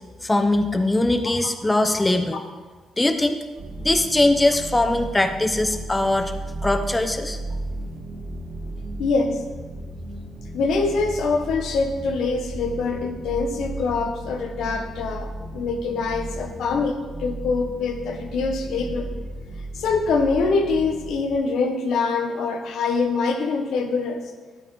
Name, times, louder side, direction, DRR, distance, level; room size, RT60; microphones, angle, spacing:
voice 1, 0.2-2.4 3.0-3.4 3.8-6.3 6.6-7.4, left 2 dB, 15° left, 7 dB, 0.7 m, -21 dB
sound 1, 3.6-21.4, right 1 dB, 60° right, 2.5 m, -35 dB
voice 2, 9.0-9.4 10.5-19.1 19.7-24.2, left 4 dB, 75° left, 5 dB, 1.1 m, -24 dB
12.0 x 8.5 x 3.3 m, 1.3 s
cardioid pair, 90°, 0 cm